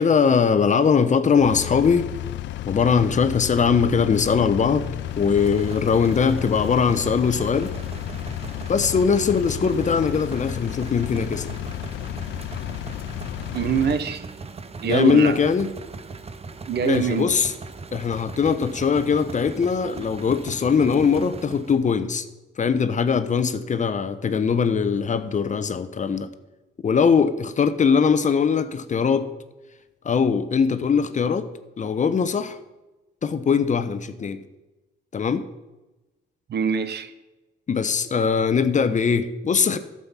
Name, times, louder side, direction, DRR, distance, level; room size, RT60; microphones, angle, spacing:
voice 1, 0.0-2.1 2.6-4.8 5.2-7.7 8.7-11.5 14.8-15.7 16.8-17.5 17.9-22.2 22.6-26.3 26.8-29.3 30.0-31.5 31.8-32.6 33.2-34.4 35.1-35.4 37.7-39.8, left 6 dB, 40° left, 11 dB, 0.9 m, -21 dB
Engine, 1.4-14.0, left 14 dB, 70° left, 0.4 m, -32 dB
sound 1, 5.0-21.9, right 4 dB, 30° right, 0.9 m, -39 dB
voice 2, 13.5-14.2 14.8-15.4 16.7-17.3 36.5-37.1, right 7 dB, 60° right, 12 dB, 1.0 m, -23 dB
11.5 x 7.7 x 5.7 m, 1.1 s
cardioid pair, 90°, 20 cm